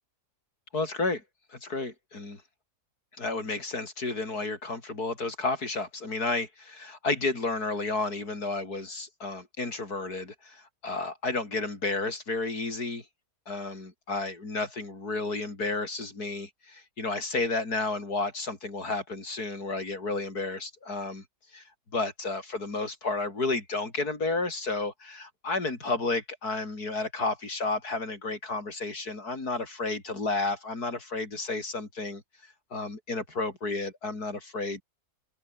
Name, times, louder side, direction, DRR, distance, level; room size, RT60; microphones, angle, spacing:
voice 1, 0.7-1.2 1.6-2.4 3.2-13.0 13.5-21.2 21.5-21.6 21.9-32.2 32.7-34.8, left 3 dB, 70° left, 5.2 m, -32 dB
open air
omnidirectional pair, 1.7 m